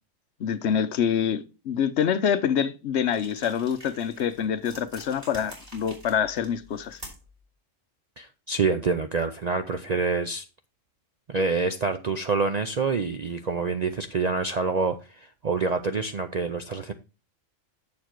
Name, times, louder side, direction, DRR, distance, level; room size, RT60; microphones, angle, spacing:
voice 1, 0.4-7.0, left 8 dB, 65° left, 0.9 m, -26 dB
sound 1, 3.1-7.4, equal, 30° right, 3.4 m, -46 dB
voice 2, 8.2-10.4 11.3-16.9, right 4 dB, 55° right, 0.4 m, -27 dB
7.3 x 7.0 x 4.5 m
omnidirectional pair, 1.3 m